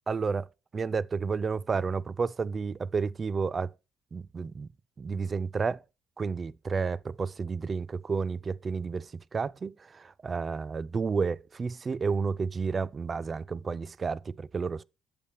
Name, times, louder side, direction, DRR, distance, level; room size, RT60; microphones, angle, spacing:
voice 1, 0.1-0.5 0.7-3.7 4.1-4.7 5.0-5.8 6.2-14.8, right 5 dB, 35° right, 0.3 m, -31 dB
8.4 x 6.7 x 3.0 m
hypercardioid pair, 50°, 0 cm